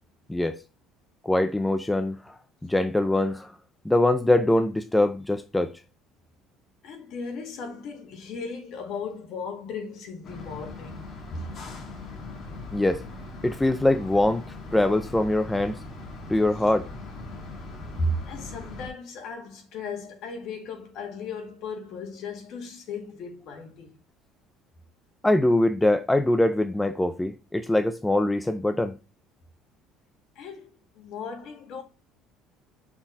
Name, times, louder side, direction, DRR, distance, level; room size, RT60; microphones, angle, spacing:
voice 1, 1.2-3.6 3.8-5.7 12.7-13.0 13.4-14.5 14.7-15.8 16.3-16.9 25.2-29.0, left 1 dB, 5° left, 0.5 m, -23 dB
voice 2, 6.8-11.1 11.3-11.5 17.3-17.4 18.0-24.0 30.4-31.8, left 2 dB, 60° left, 2.0 m, -36 dB
sound 1, 10.2-18.9, left 2 dB, 40° left, 1.9 m, -40 dB
5.9 x 4.1 x 4.6 m
cardioid pair, 120°, 0 cm